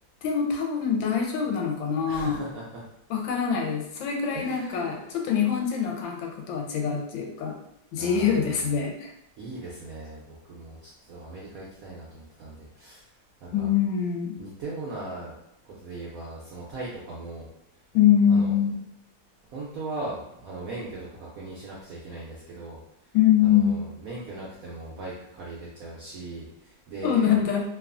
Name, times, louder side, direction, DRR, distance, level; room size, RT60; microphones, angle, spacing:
voice 1, 0.2-2.4 3.1-7.5 7.9-9.1 13.5-14.4 17.9-18.8 23.1-23.9 27.0-27.6, left 8 dB, 75° left, 1 dB, 1.2 m, -24 dB
voice 2, 2.1-2.8 4.3-5.0 7.9-8.5 9.4-13.1 13.4-13.7 14.4-15.3 15.6-17.5 18.3-18.5 19.5-23.2 23.4-27.3, right 2 dB, 75° right, -5 dB, 0.8 m, -39 dB
3.0 x 2.3 x 2.4 m, 0.79 s
omnidirectional pair, 2.1 m